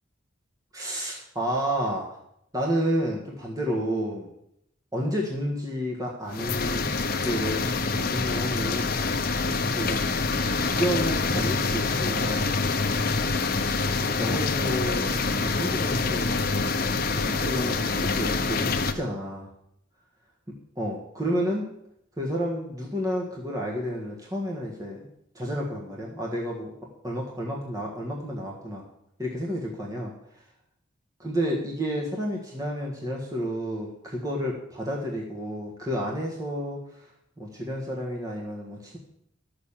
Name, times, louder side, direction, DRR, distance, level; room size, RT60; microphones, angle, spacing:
voice 1, 0.7-2.0 2.5-4.3 4.9-6.8 7.2-9.0 9.4-10.0 10.6-12.6 13.6-15.1 15.4-19.5 20.7-21.7 22.2-25.1 25.3-26.7 27.0-28.8 29.2-30.1 31.2-37.0 37.4-39.0, equal, 15° right, -2 dB, 1.6 m, -31 dB
sound 1, 6.3-18.9, left 3 dB, 50° left, 0.9 m, -26 dB
13.0 x 6.8 x 7.2 m, 0.76 s
head